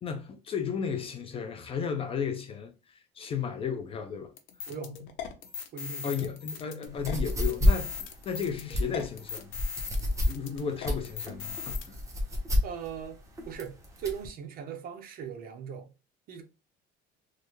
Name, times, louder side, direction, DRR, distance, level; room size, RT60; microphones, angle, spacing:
voice 1, 0.0-4.3 6.0-9.5 10.2-12.0, left 6 dB, 30° left, 0.4 m, -34 dB
sound 1, 4.4-11.9, left 7 dB, 75° left, 0.7 m, -39 dB
voice 2, 4.7-5.0 5.7-6.3 12.6-13.2 13.5-15.9 16.3-16.4, right 7 dB, 45° right, 0.7 m, -39 dB
sound 2, 6.9-14.3, left 1 dB, 15° right, 0.8 m, -29 dB
3.2 x 2.4 x 3.0 m
cardioid pair, 155°, 20 cm